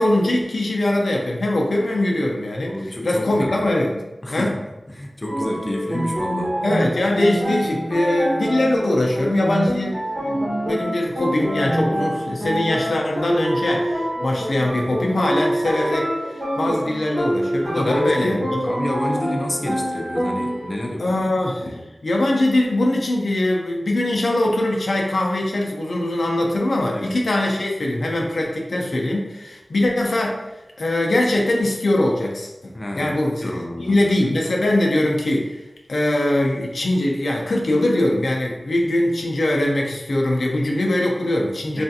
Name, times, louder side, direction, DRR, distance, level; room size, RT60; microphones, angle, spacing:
voice 1, 0.0-4.0 4.3-4.5 6.6-18.4 21.0-30.4 30.8-35.6 35.9-41.8, left 1 dB, 90° left, -1 dB, 0.4 m, -22 dB
voice 2, 2.6-3.7 4.2-6.6 17.7-21.3 21.6-21.8 26.9-27.2 32.7-34.1 41.7-41.8, left 1 dB, 40° left, 0 dB, 0.5 m, -30 dB
sound 1, 5.3-20.9, equal, 60° right, 1.0 m, -25 dB
3.3 x 2.4 x 2.6 m, 1.0 s
wide cardioid pair, 50°, 0 cm